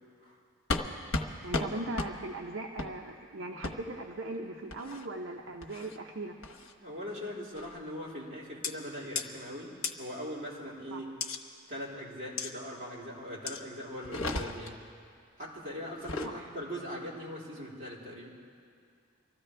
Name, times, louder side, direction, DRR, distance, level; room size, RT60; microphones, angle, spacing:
sound 1, 0.7-0.9 1.1-1.3 1.5-1.7 2.0-2.1 2.8-2.9 3.6-3.7 4.7-5.0 5.6-6.0 6.4-6.7 7.5-7.8 8.6-8.7 9.1-9.2 9.8-9.9 11.2-11.4 12.4-12.5 13.5-13.6 14.0-14.7 15.9-16.3, left 3 dB, 70° left, 1.1 m, -34 dB
voice 1, 1.4-6.4 10.9-11.0 16.2-16.5, right 2 dB, 60° right, 1 dB, 0.7 m, -39 dB
voice 2, 6.8-11.1 11.7-14.8 15.4-18.3, equal, 30° right, -7 dB, 3.7 m, -41 dB
25.0 x 14.5 x 3.4 m, 2.3 s
head